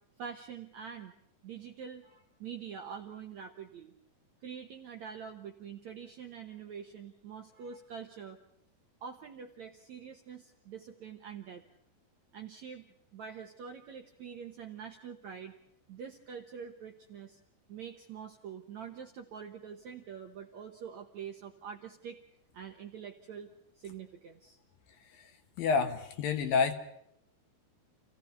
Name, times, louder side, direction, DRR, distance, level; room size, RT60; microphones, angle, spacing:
voice 1, 0.2-1.1 1.4-3.9 4.4-8.4 9.0-11.6 12.3-12.9 13.1-15.5 15.9-17.4 17.7-22.2 22.5-23.5 23.8-24.6, right 7 dB, 70° right, 3 dB, 1.8 m, -45 dB
voice 2, 25.6-26.7, left 5 dB, 65° left, 7 dB, 2.8 m, -28 dB
29.0 x 16.0 x 5.7 m, 0.74 s
omnidirectional pair, 4.9 m